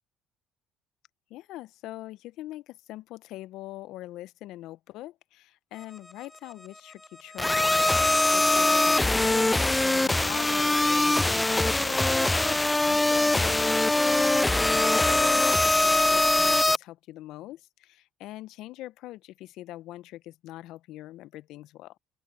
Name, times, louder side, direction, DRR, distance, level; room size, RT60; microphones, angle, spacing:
voice 1, 1.3-14.5 14.8-22.0, left 16 dB, 70° left, 1.0 m, -43 dB
sound 1, 7.4-16.8, left 2 dB, 15° left, 0.5 m, -22 dB
open air
hypercardioid pair, 60°, 0 cm